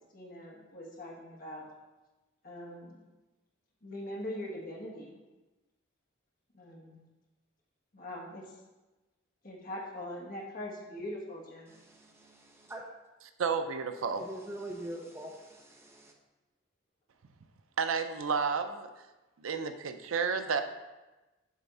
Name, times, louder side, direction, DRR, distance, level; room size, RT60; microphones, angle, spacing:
voice 1, 0.1-1.7 2.4-3.0 3.8-5.2 6.5-7.0 7.9-8.4 9.4-11.7, left 1 dB, 45° left, -2 dB, 1.4 m, -42 dB
voice 2, 11.7-12.9 14.2-16.1, right 1 dB, 10° right, 0 dB, 0.6 m, -44 dB
voice 3, 13.4-14.3 17.8-18.9 19.4-20.6, right 5 dB, 85° right, 8 dB, 0.5 m, -31 dB
7.3 x 3.5 x 5.5 m, 1.1 s
head